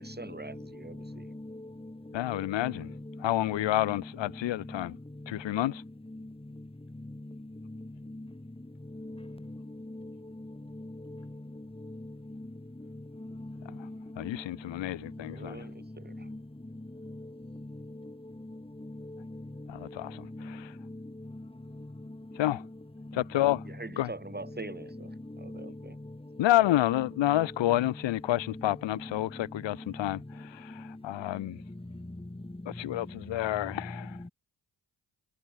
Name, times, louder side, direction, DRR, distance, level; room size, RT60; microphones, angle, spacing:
voice 1, 0.0-1.3 15.3-16.3 23.7-25.9, right 2 dB, 20° right, 2.1 m, -44 dB
voice 2, 1.0-1.9 2.3-4.1 4.7-4.9 6.1-6.3 7.6-8.3 8.9-11.3 11.5-12.5 13.2-14.4 15.1-15.2 15.5-15.6 16.1-16.4 17.0-17.7 18.0-18.1 18.4-19.4 19.8-19.9 20.3-21.0 21.3-21.4 22.5-22.7 23.1-23.2 23.5-23.6 24.5-24.9 25.3-25.8 26.6-27.8 28.4-28.7 28.9-29.1 34.2-34.3, left 1 dB, 15° left, 2.1 m, -43 dB
voice 3, 2.1-2.9 3.2-4.9 5.3-5.8 14.2-15.6 19.7-20.2 22.4-22.6 23.1-23.6 24.0-24.1 26.4-30.2 30.5-31.6 32.8-34.1, left 14 dB, 90° left, 0.7 m, -29 dB
cardioid pair, 45°, 43 cm